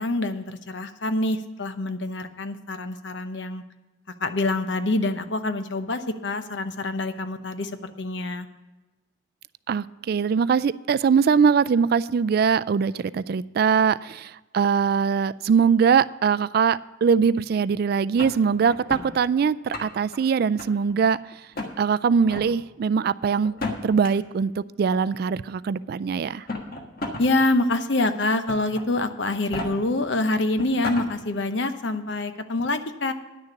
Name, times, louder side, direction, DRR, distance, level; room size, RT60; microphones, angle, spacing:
voice 1, 0.0-3.6 4.2-8.5 27.2-33.1, left 2 dB, 75° left, 9 dB, 0.8 m, -26 dB
voice 2, 9.7-21.2 21.8-23.5 23.8-26.4, right 6 dB, 55° right, 16 dB, 0.3 m, -22 dB
sound 1, 18.2-19.1 19.5-20.2 20.6-21.2 21.5-21.7 22.2-22.5 23.4-24.1 25.1-25.2 26.3-27.3 27.7-27.8 28.5-28.8 29.3-29.7 30.2-30.3 30.6-31.1, left 2 dB, 55° left, 1.5 m, -32 dB
10.5 x 6.7 x 7.0 m, 1.1 s
head